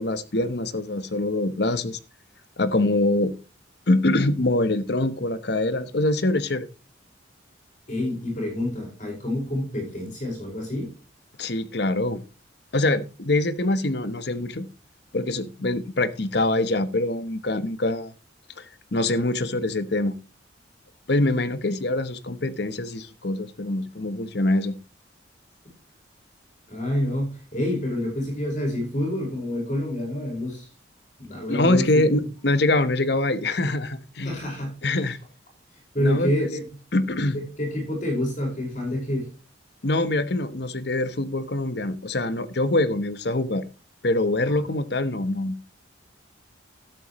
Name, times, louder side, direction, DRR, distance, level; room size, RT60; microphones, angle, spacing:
voice 1, 0.0-2.0 2.6-3.3 3.9-6.7 11.4-12.2 12.7-14.7 15.1-18.1 18.6-18.7 18.9-20.2 21.1-24.7 31.5-34.3 34.8-35.2 36.0-36.5 36.9-37.4 39.8-43.6 44.0-45.6, left 2 dB, 55° left, 1.0 m, -24 dB
voice 2, 7.9-10.9 26.7-30.7 31.2-32.2 34.2-34.7 35.9-36.7 37.3-39.3 44.4-44.6, left 1 dB, 40° left, 5.1 m, -27 dB
12.5 x 12.0 x 3.0 m
head